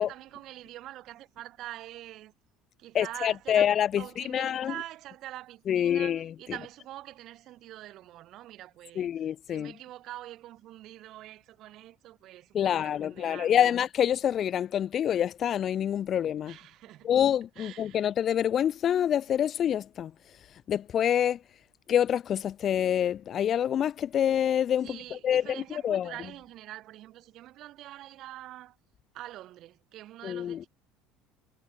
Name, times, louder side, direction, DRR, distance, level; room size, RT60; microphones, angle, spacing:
voice 1, 0.0-2.3 2.8-3.7 4.0-13.7 16.4-17.1 17.6-18.1 24.8-28.8 29.1-30.7, right 14 dB, 40° right, 7.8 m, -45 dB
voice 2, 2.9-4.7 5.7-6.3 9.0-9.7 12.5-16.6 17.0-21.4 21.9-26.1 30.2-30.7, left 9 dB, 30° left, 0.3 m, -27 dB
cardioid pair, 170°, 0 cm